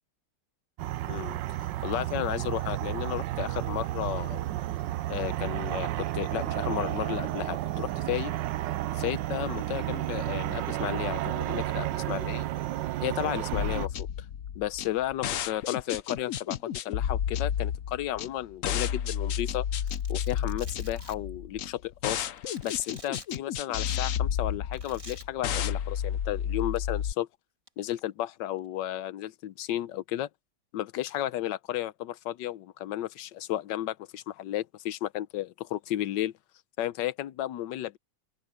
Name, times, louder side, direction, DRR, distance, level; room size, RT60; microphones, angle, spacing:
sound 1, 0.8-13.9, right 14 dB, 85° right, 1.3 m, -32 dB
voice 1, 1.1-4.5 5.1-8.3 8.9-12.5 13.0-13.9 14.6-19.7 20.1-22.3 22.6-27.3 27.8-30.3 30.7-36.3 36.8-38.0, left 13 dB, 80° left, 1.3 m, -33 dB
sound 2, 13.5-27.1, left 9 dB, 60° left, 0.9 m, -31 dB
Domestic sounds home sounds, 19.9-21.2 22.2-23.4 24.7-25.2 26.6-26.8 27.7-28.0, right 1 dB, 15° right, 3.4 m, -48 dB
open air
omnidirectional pair, 2.0 m